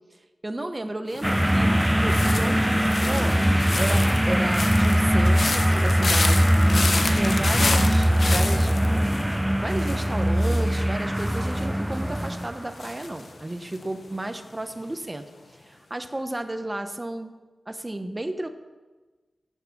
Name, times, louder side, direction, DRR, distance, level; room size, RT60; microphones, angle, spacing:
voice 1, 0.4-3.4 3.8-6.6 7.1-8.7 9.6-17.3 17.7-18.5, right 1 dB, 20° right, 8 dB, 0.9 m, -33 dB
sound 1, 1.1-14.2 14.4-14.9, left 3 dB, 60° left, 0.9 m, -32 dB
sound 2, 1.2-12.6, equal, 5° right, 0.3 m, -21 dB
15.0 x 6.6 x 6.0 m, 1.3 s
wide cardioid pair, 100°, 0 cm